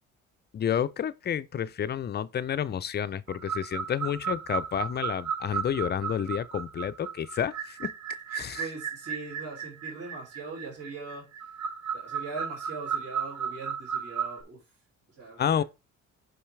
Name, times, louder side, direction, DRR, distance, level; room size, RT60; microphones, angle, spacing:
voice 1, 0.5-7.9 8.3-8.6 15.4-15.6, left 9 dB, 35° left, 0.4 m, -30 dB
sound 1, 3.3-14.4, right 7 dB, 70° right, 1.0 m, -35 dB
voice 2, 8.4-11.3 11.9-14.6 15.1-15.6, right 3 dB, 50° right, 3.1 m, -41 dB
5.6 x 5.5 x 3.2 m
cardioid pair, 90°, 30 cm